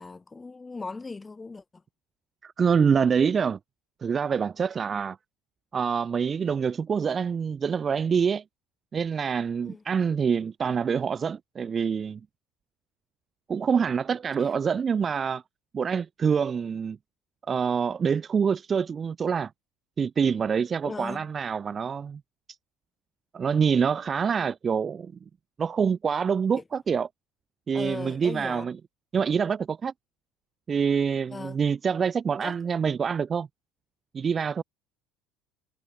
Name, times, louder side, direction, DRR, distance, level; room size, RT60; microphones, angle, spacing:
voice 1, 0.0-1.8 9.6-9.8 14.4-14.5 20.8-21.3 26.5-26.6 27.7-28.7 31.3-31.6 32.4-32.6, left 3 dB, 15° left, 3.5 m, -38 dB
voice 2, 2.4-3.6 4.0-5.2 5.7-8.4 8.9-12.2 13.5-15.4 15.7-17.0 17.5-19.5 20.0-22.2 23.3-25.1 25.6-27.1 27.7-28.8 29.1-29.9 30.7-33.5 34.1-34.6, right 6 dB, 25° right, 0.5 m, -26 dB
cardioid pair, 135°, 0 cm